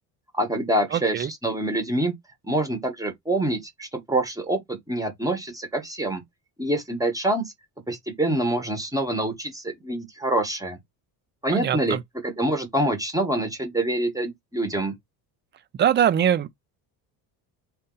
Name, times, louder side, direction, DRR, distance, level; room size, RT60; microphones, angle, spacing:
voice 1, 0.4-2.1 2.5-4.6 4.9-6.2 6.6-7.4 7.9-10.8 11.4-12.0 12.2-14.9, right 1 dB, 10° right, 1.0 m, -26 dB
voice 2, 0.9-1.3 11.5-12.0 15.8-16.5, right 9 dB, 30° right, 0.3 m, -22 dB
4.1 x 2.6 x 3.7 m
cardioid pair, 150°, 42 cm